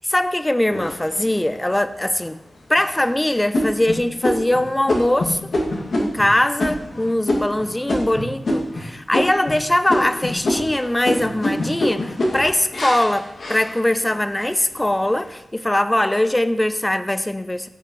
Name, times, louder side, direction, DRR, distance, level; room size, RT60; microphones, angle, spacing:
voice 1, 0.1-2.4 2.7-5.5 6.0-17.7, left 1 dB, 15° left, 12 dB, 0.6 m, -21 dB
sound 1, 0.7-1.6 2.1-2.2 2.7-3.1 3.5-8.8 9.1-9.6 9.9-14.2 14.7-15.2, left 1 dB, 90° left, 2.4 m, -25 dB
17.5 x 8.6 x 3.2 m, 0.94 s
wide cardioid pair, 105°, 0 cm